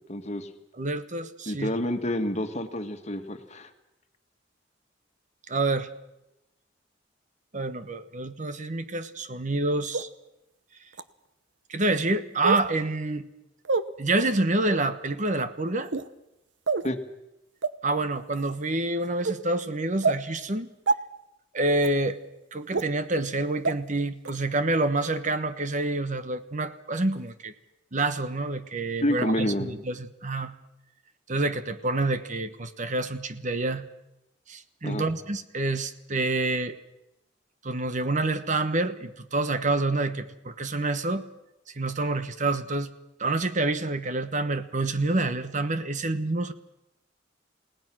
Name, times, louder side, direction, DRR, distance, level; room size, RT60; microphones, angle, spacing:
voice 1, 0.1-0.5 1.5-3.7 16.8-17.0 29.0-29.7 34.8-35.0, left 1 dB, 40° left, 7 dB, 1.8 m, -28 dB
voice 2, 0.8-1.7 5.5-5.9 7.5-10.1 11.7-13.3 14.0-15.9 17.8-20.7 21.5-22.2 22.5-27.5 27.9-30.5 31.3-33.8 34.5-36.8 37.6-41.2 41.7-42.9 43.2-46.5, right 2 dB, 45° right, 11 dB, 1.2 m, -27 dB
sound 1, 9.9-10.0 10.9-11.0 12.4-12.7 13.6-13.8 14.6-14.8 15.8-16.1 16.7-16.9 17.6-17.7 18.3-18.5 19.2-19.3 20.0-20.2 20.9-21.0 21.8-21.9 22.7-22.8 23.6-23.7 24.2-24.3, right 4 dB, 80° right, 1.0 m, -26 dB
29.0 x 18.0 x 6.2 m, 0.90 s
head